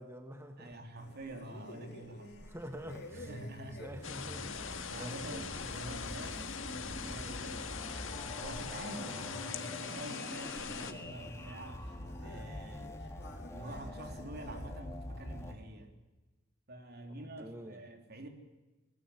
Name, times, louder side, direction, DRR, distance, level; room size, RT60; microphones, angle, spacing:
voice 1, 0.0-0.7 2.5-3.3 3.6-4.5 5.0-5.4 17.4-17.8, equal, 15° right, 5 dB, 1.5 m, -46 dB
voice 2, 0.6-2.5 3.1-3.8 4.4-7.8 8.3-12.9 13.5-15.9 16.7-18.3, right 1 dB, 55° right, 5 dB, 3.3 m, -47 dB
sound 1, 1.0-14.8, left 1 dB, 55° left, 3.5 m, -51 dB
sound 2, 2.6-15.5, left 1 dB, 15° left, 2.1 m, -46 dB
sound 3, 4.0-10.9, left 6 dB, 75° left, 1.9 m, -42 dB
20.0 x 18.0 x 9.5 m, 1.1 s
head